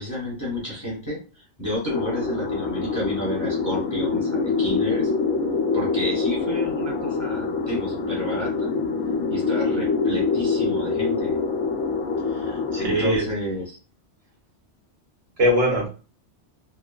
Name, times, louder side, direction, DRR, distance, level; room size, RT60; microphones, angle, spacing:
voice 1, 0.0-5.1 5.7-8.7 9.3-11.4 12.7-13.8, equal, 15° left, -4 dB, 1.1 m, -31 dB
sound 1, 1.9-13.2, left 4 dB, 85° left, 0.9 m, -25 dB
voice 2, 12.3-13.3 15.4-15.9, equal, 65° right, 0 dB, 1.0 m, -22 dB
3.2 x 2.2 x 2.2 m, 0.34 s
omnidirectional pair, 1.2 m